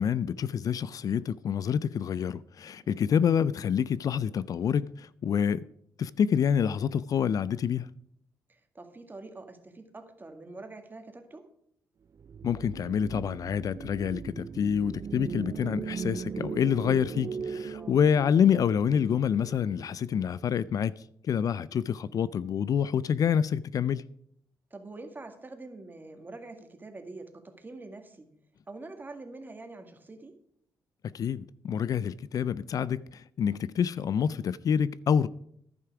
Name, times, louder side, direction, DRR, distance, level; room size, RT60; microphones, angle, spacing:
voice 1, 0.0-5.6 6.0-7.9 12.4-20.9 21.2-24.0 31.0-35.3, left 8 dB, 55° left, 0.4 m, -27 dB
voice 2, 2.8-3.2 8.5-11.5 17.7-18.0 24.7-28.3 28.7-30.4, right 2 dB, 25° right, 1.9 m, -45 dB
sound 1, 12.2-20.5, right 6 dB, 45° right, 0.4 m, -39 dB
11.0 x 9.4 x 4.8 m
supercardioid pair, 65°, 7 cm